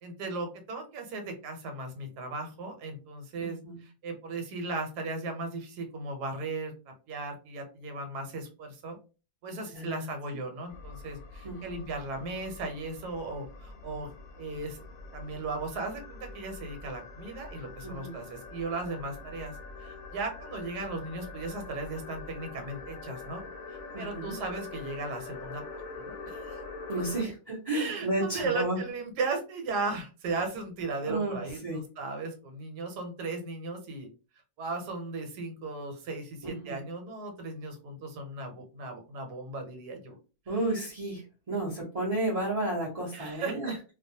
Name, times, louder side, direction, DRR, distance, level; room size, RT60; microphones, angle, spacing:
voice 1, 0.0-9.0 9.4-14.1 14.4-14.8 15.1-23.4 23.7-25.6 26.0-26.6 27.7-34.1 34.6-40.1 43.1-43.7, right 3 dB, 80° right, 4 dB, 1.3 m, -36 dB
voice 2, 3.4-3.8 9.7-10.1 11.4-11.8 17.8-18.2 23.9-24.3 26.9-28.8 31.1-31.8 36.4-36.8 40.5-41.2 41.5-43.7, right 1 dB, 35° right, -7 dB, 0.6 m, -32 dB
sound 1, 10.7-27.2, left 3 dB, 70° left, 0.9 m, -44 dB
2.5 x 2.3 x 2.7 m, 0.34 s
omnidirectional pair, 1.7 m